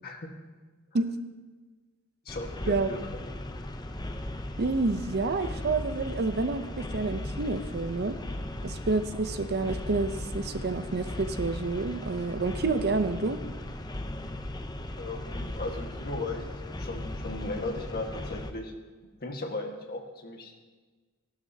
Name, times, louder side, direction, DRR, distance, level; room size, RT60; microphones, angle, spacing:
voice 1, 2.2-3.2 15.0-16.4 16.8-18.7 19.2-20.5, left 2 dB, 45° left, 2 dB, 1.6 m, -36 dB
sound 1, 2.3-18.5, left 1 dB, 20° left, 0.6 m, -37 dB
voice 2, 4.6-8.2 8.6-13.4, right 3 dB, 50° right, 9 dB, 0.6 m, -29 dB
17.0 x 11.5 x 2.8 m, 1.4 s
head